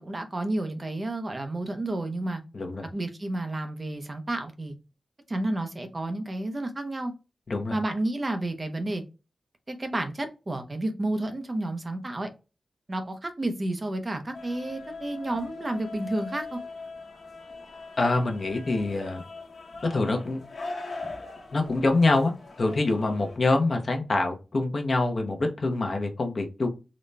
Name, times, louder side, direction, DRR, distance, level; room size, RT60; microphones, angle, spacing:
voice 1, 0.0-2.4 2.9-4.7 5.3-7.1 7.7-9.0 9.7-12.3 12.9-16.6, right 1 dB, 25° right, 0.5 m, -31 dB
voice 2, 2.5-2.9 7.5-7.8 18.0-19.2 19.8-20.4 21.5-26.7, left 2 dB, 40° left, 0.7 m, -25 dB
sound 1, 14.3-23.4, left 3 dB, 75° left, 1.1 m, -41 dB
3.9 x 2.1 x 3.2 m
wide cardioid pair, 170°, 0 cm